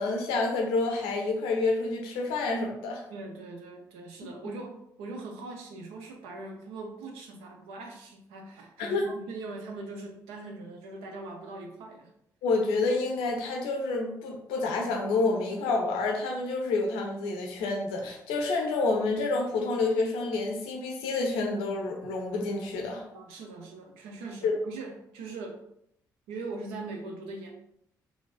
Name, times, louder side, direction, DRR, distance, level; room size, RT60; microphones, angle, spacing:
voice 1, 0.0-3.0 4.2-4.5 8.8-9.0 12.4-23.0 24.4-24.5, left 3 dB, 70° left, 1 dB, 0.6 m, -28 dB
voice 2, 3.1-12.1 23.1-25.6 26.3-27.5, right 3 dB, 70° right, 2 dB, 0.5 m, -41 dB
3.9 x 2.3 x 2.4 m, 0.74 s
figure-of-eight pair, 40°, 10 cm